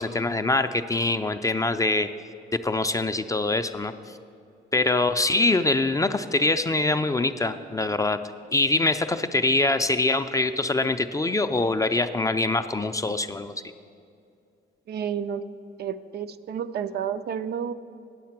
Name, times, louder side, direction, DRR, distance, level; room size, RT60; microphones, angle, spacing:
voice 1, 0.0-2.1 2.6-3.9 4.7-8.2 8.5-13.5, left 2 dB, 15° left, 9 dB, 0.4 m, -24 dB
voice 2, 14.9-15.4 15.8-17.7, right 8 dB, 55° right, 11 dB, 0.4 m, -30 dB
9.3 x 7.3 x 5.9 m, 2.4 s
cardioid pair, 90°, 20 cm